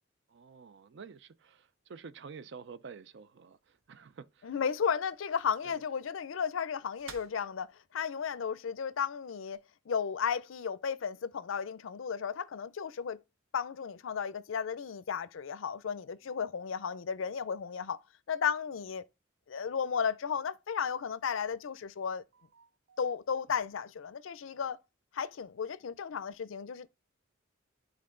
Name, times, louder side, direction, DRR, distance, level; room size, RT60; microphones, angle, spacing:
voice 1, 0.3-4.5 5.6-5.8 22.3-23.0, right 5 dB, 60° right, 0.4 m, -50 dB
sound 1, 3.5-9.6, right 5 dB, 85° right, 1.0 m, -58 dB
voice 2, 4.4-9.6 9.9-13.2 13.5-18.0 18.3-19.0 19.5-22.2 23.0-24.8 25.1-26.9, left 7 dB, 75° left, 0.4 m, -34 dB
9.7 x 3.7 x 3.7 m
head